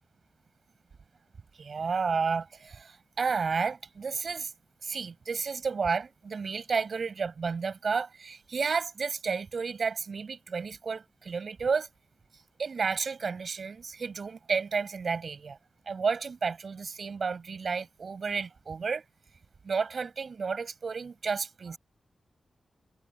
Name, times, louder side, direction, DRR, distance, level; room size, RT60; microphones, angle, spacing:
voice 1, 1.5-4.5 4.8-11.9 12.6-15.6 15.9-19.0 19.6-21.8, right 5 dB, 55° right, 7.6 m, -31 dB
wide cardioid pair, 110°, 0 cm